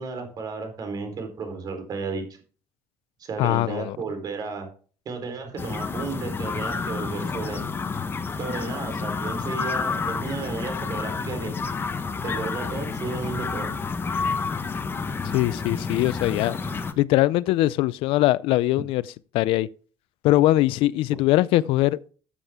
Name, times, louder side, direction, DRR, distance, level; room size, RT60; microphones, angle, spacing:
voice 1, 0.0-2.2 3.2-4.7 5.1-7.6 8.4-11.5 12.2-13.7, right 4 dB, 45° right, 4.1 m, -33 dB
voice 2, 3.4-4.0 15.2-16.6 17.0-19.0 19.3-19.7 20.2-22.0, left 16 dB, 75° left, 0.5 m, -21 dB
sound 1, 5.6-16.9, left 4 dB, 25° left, 1.1 m, -29 dB
13.5 x 7.3 x 3.7 m
cardioid pair, 120°, 9 cm